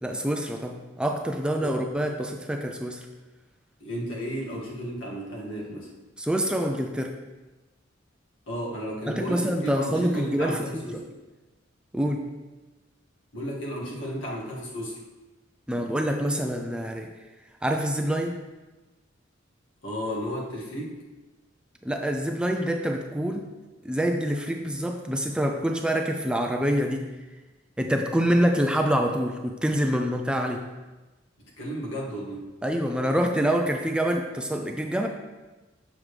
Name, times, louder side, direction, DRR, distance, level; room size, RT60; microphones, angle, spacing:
voice 1, 0.0-3.1 6.2-7.2 9.1-11.0 11.9-12.3 15.7-17.1 17.6-18.4 21.8-23.5 23.8-27.1 27.8-30.7 32.6-35.1, equal, 5° right, 4 dB, 0.4 m, -26 dB
voice 2, 3.8-6.0 8.5-11.1 13.3-15.0 19.8-21.0 31.6-32.5, equal, 75° left, -4 dB, 1.8 m, -33 dB
7.2 x 6.7 x 3.2 m, 1.2 s
head